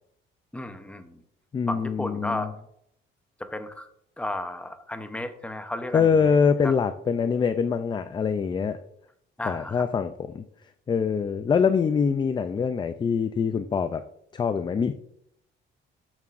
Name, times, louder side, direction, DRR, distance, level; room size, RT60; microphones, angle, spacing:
voice 1, 0.5-1.2 1.7-2.5 3.4-3.9 4.2-6.4 6.6-6.7 9.4-9.9, left 1 dB, 5° left, 8 dB, 0.7 m, -33 dB
voice 2, 1.5-2.5 5.9-8.8 9.5-10.4 10.9-14.0 14.3-14.9, left 6 dB, 20° left, 10 dB, 0.3 m, -24 dB
12.5 x 7.3 x 2.5 m, 0.75 s
cardioid pair, 145°, 21 cm